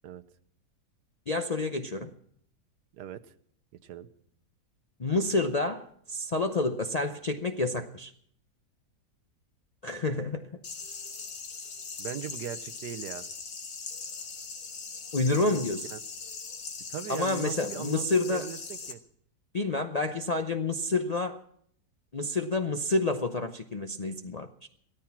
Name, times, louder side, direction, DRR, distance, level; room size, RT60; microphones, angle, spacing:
voice 1, 1.3-2.1 5.0-8.1 9.8-10.5 15.1-15.9 17.1-18.5 19.5-21.4 22.1-24.7, left 2 dB, 45° left, 5 dB, 0.5 m, -29 dB
sound 1, 10.6-18.9, left 5 dB, 70° left, 2.0 m, -40 dB
voice 2, 12.0-13.3 15.9-16.0 16.9-19.0, right 10 dB, 85° right, 11 dB, 1.4 m, -39 dB
17.0 x 13.5 x 5.9 m, 0.64 s
omnidirectional pair, 1.7 m